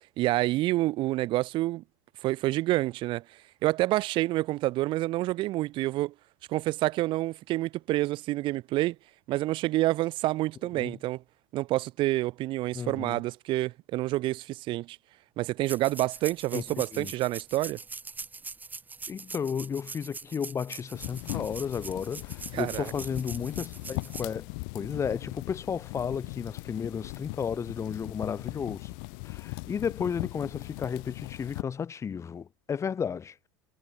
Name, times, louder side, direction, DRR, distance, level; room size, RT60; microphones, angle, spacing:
voice 1, 0.2-1.8 2.2-3.2 3.6-6.1 6.5-8.9 9.3-11.2 11.5-15.0 15.4-17.8 22.5-22.9, right 17 dB, 50° right, 1.5 m, -28 dB
voice 2, 12.7-13.2 16.5-16.6 16.9-17.1 19.1-28.9 29.2-33.5, left 7 dB, 25° left, 5.9 m, -33 dB
sound 1, 15.6-24.2, right 4 dB, 15° right, 3.6 m, -43 dB
sound 2, 20.9-31.6, left 34 dB, 65° left, 7.0 m, -39 dB
supercardioid pair, 105°, 11 cm